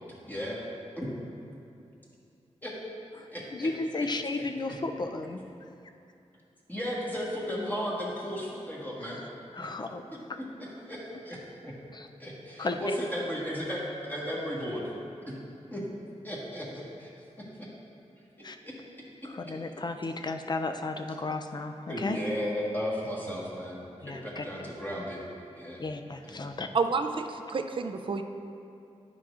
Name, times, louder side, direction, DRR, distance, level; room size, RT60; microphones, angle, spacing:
voice 1, 0.2-0.6 0.9-1.1 2.6-2.7 3.3-3.7 4.0-4.1 4.3-4.7 6.7-9.2 10.1-11.7 12.2-14.8 15.3-15.4 15.7-15.8 16.2-17.1 17.4-17.7 18.6-18.8 19.2-19.3 21.9-25.2 25.5-25.8 26.2-26.5, equal, 15° left, -6 dB, 1.4 m, -35 dB
voice 2, 3.5-5.4 9.0-9.1 9.5-10.0 11.9-12.1 12.6-12.8 18.4-18.6 19.2-22.2 24.0-24.4 25.8-26.7, left 3 dB, 35° left, 6 dB, 0.4 m, -34 dB
voice 3, 26.7-28.2, right 4 dB, 45° right, 6 dB, 0.4 m, -29 dB
9.7 x 5.9 x 2.5 m, 2.6 s
wide cardioid pair, 80°, 12 cm